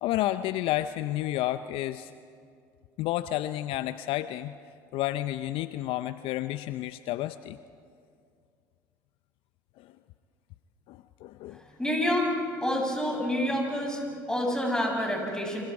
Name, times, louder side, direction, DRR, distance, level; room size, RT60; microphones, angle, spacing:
voice 1, 0.0-2.1 3.0-4.5 4.9-7.6 9.8-9.9 10.9-11.6, left 14 dB, 60° left, 13 dB, 0.6 m, -31 dB
voice 2, 11.8-12.3 12.6-14.0 14.3-15.6, equal, 5° left, 1 dB, 7.4 m, -27 dB
29.5 x 25.5 x 4.8 m, 2.3 s
hypercardioid pair, 70°, 10 cm